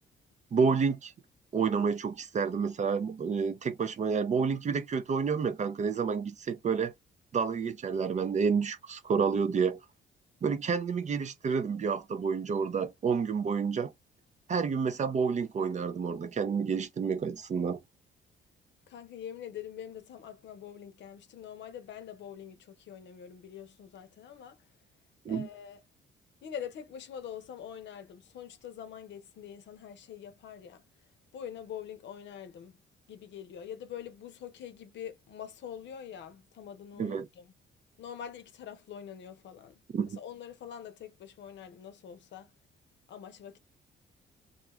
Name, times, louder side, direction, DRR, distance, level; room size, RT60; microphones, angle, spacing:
voice 1, 0.5-1.1 1.5-6.9 7.3-9.8 10.4-13.9 14.5-17.8 25.3-25.5 37.0-37.3 39.9-40.2, right 5 dB, 35° right, 0.5 m, -29 dB
voice 2, 18.9-24.7 25.3-25.8 26.4-32.8 33.1-37.5 38.0-39.8 40.1-42.5 43.1-43.6, left 9 dB, 65° left, 0.7 m, -44 dB
2.4 x 2.3 x 3.0 m
cardioid pair, 90°, 20 cm